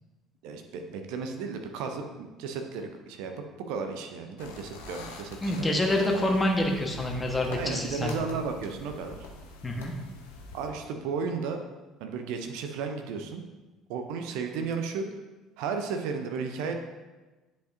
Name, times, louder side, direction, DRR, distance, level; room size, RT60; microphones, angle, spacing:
voice 1, 0.4-5.8 7.5-9.3 10.5-11.6 12.0-13.4 13.9-15.1 15.6-16.7, right 5 dB, 60° right, 5 dB, 0.6 m, -34 dB
sound 1, 4.4-10.7, left 3 dB, 70° left, 0.8 m, -45 dB
voice 2, 5.4-8.1 9.6-9.9, left 1 dB, 20° left, 1 dB, 1.3 m, -27 dB
10.0 x 5.1 x 2.7 m, 1.2 s
figure-of-eight pair, 55°, 0 cm